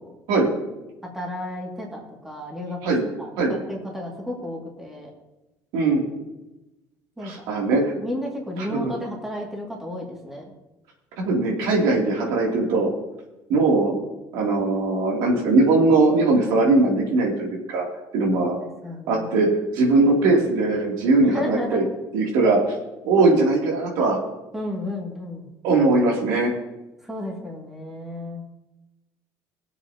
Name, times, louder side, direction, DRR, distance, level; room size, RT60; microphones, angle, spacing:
voice 1, 1.1-2.9 3.2-5.1 7.2-7.4 7.9-10.5 18.3-19.5 21.2-21.9 24.5-25.5 27.0-28.4, left 1 dB, 5° right, -2 dB, 2.3 m, -33 dB
voice 2, 5.7-6.0 7.2-7.9 8.6-8.9 11.2-12.9 13.5-13.9 14.3-17.8 18.1-18.6 19.1-19.5 19.7-21.8 22.1-22.6 23.0-24.2 25.6-26.5, right 3 dB, 80° right, -1 dB, 2.8 m, -20 dB
20.5 x 7.9 x 2.9 m, 1.0 s
cardioid pair, 145°, 7 cm